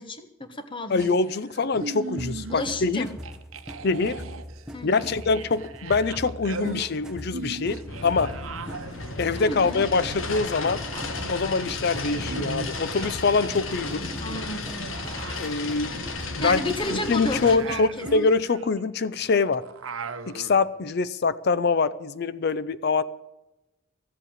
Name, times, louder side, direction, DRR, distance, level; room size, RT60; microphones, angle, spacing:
voice 1, 0.0-1.1 2.5-3.1 4.7-5.1 9.4-9.9 14.0-15.0 16.4-18.1, left 1 dB, 25° left, 9 dB, 1.1 m, -32 dB
voice 2, 0.9-3.1 3.8-4.2 4.8-8.3 9.2-10.8 11.3-14.1 15.4-16.1 16.4-16.6 16.9-19.6 20.3-23.0, left 4 dB, 50° left, 16 dB, 0.5 m, -24 dB
sound 1, 1.0-2.9 3.2-13.5 13.7-20.6, right 4 dB, 80° right, 0.8 m, -39 dB
sound 2, 2.2-18.4, equal, 5° right, 0.8 m, -41 dB
sound 3, 7.9-17.5, left 3 dB, 75° left, 1.6 m, -34 dB
14.0 x 8.2 x 8.6 m, 0.98 s
head